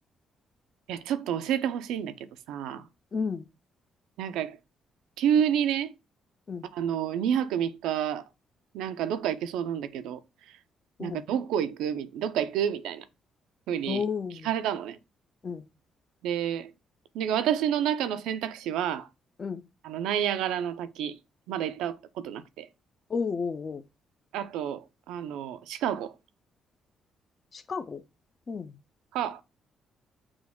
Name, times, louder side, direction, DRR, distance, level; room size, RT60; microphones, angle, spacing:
voice 1, 0.9-2.2 2.5-2.9 4.2-4.6 5.2-5.9 6.7-8.2 8.7-10.2 10.5-10.6 11.0-13.0 13.7-14.1 14.4-15.0 16.2-16.7 17.1-19.1 19.8-21.2 21.5-22.7 24.3-26.1 29.1-29.4, right 9 dB, 90° right, 0.4 m, -29 dB
voice 2, 3.1-3.4 6.5-6.7 11.0-11.2 13.9-14.5 15.4-15.6 19.4-19.6 23.1-23.8 27.5-28.0 28.5-28.7, left 5 dB, 40° left, 0.5 m, -32 dB
6.1 x 2.2 x 3.6 m
cardioid pair, 75°, 0 cm